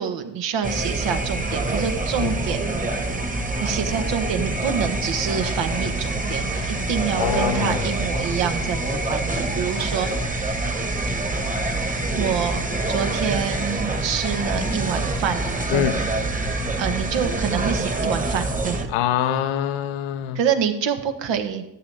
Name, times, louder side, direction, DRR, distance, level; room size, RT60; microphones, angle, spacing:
voice 1, 0.0-2.8 3.6-10.3 12.2-15.4 15.7-16.1 16.8-18.9 20.3-21.6, right 7 dB, 65° right, 7 dB, 1.5 m, -26 dB
sound 1, 0.6-18.9, right 2 dB, 15° right, 1.5 m, -26 dB
voice 2, 7.2-7.8 15.7-16.0 18.9-20.4, left 10 dB, 75° left, 10 dB, 0.8 m, -24 dB
13.5 x 8.6 x 3.5 m, 0.86 s
hypercardioid pair, 55°, 48 cm